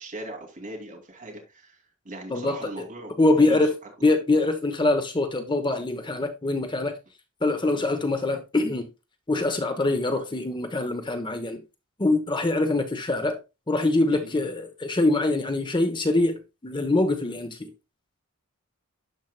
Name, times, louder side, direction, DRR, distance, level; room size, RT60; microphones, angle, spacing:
voice 1, 0.0-3.6 7.6-7.9 14.1-14.3, right 1 dB, 35° right, 2.6 m, -40 dB
voice 2, 3.2-3.7 4.0-7.0 7.4-8.9 9.3-11.6 12.0-13.4 13.7-17.7, left 2 dB, 20° left, 0.8 m, -24 dB
12.0 x 4.6 x 2.2 m
head